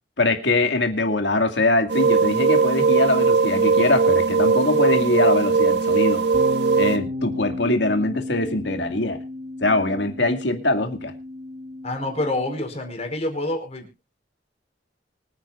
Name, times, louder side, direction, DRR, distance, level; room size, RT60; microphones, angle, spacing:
voice 1, 0.2-6.2 6.8-9.2 9.6-11.1, left 2 dB, 80° left, 5 dB, 2.3 m, -22 dB
sound 1, 1.9-7.0, right 4 dB, 70° right, 1.9 m, -19 dB
sound 2, 6.3-12.6, left 2 dB, 45° right, 2.1 m, -34 dB
voice 2, 11.8-13.9, left 1 dB, 40° left, 3 dB, 4.9 m, -27 dB
25.0 x 9.4 x 2.5 m, 0.27 s
head